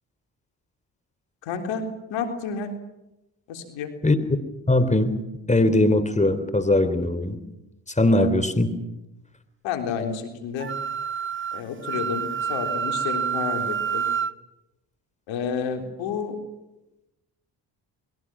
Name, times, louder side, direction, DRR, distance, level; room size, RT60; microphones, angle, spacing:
voice 1, 1.4-2.7 3.5-4.0 8.1-8.3 9.6-10.7 11.5-14.0 15.3-16.4, left 6 dB, 85° left, 5 dB, 3.9 m, -30 dB
voice 2, 4.7-5.1 5.5-7.4 8.0-8.7, left 1 dB, 15° left, 12 dB, 3.5 m, -20 dB
Wind instrument woodwind instrument, 10.6-14.3, right 7 dB, 25° right, 1.1 m, -28 dB
29.0 x 21.5 x 6.2 m, 0.94 s
supercardioid pair, 65°, 45 cm